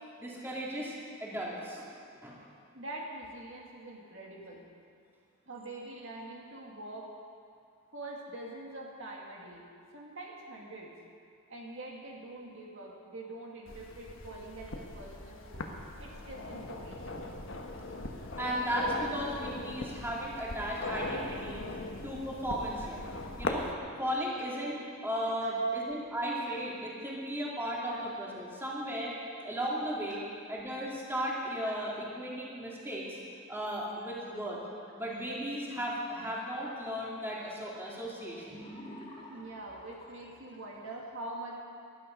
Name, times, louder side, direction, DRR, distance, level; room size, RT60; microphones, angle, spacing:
voice 1, 0.2-0.9 1.2-1.9 2.2-2.4 18.4-21.6 22.0-23.0 23.4-23.7 24.0-24.8 25.0-29.1 29.4-30.2 30.5-33.2 33.5-34.6 34.9-38.6, equal, 10° right, -5 dB, 2.8 m, -35 dB
voice 2, 2.7-4.7 5.5-7.1 7.9-9.6 9.9-10.9 11.5-15.7 16.0-17.3 25.4-25.5 27.9-28.0 30.1-30.2 31.6-31.7 39.3-41.6, right 2 dB, 65° right, -2 dB, 2.1 m, -44 dB
sound 1, 13.7-23.7, left 2 dB, 65° left, 1.4 m, -40 dB
sound 2, 38.3-41.0, left 1 dB, 25° left, 2.4 m, -49 dB
19.0 x 12.5 x 5.3 m, 2.4 s
head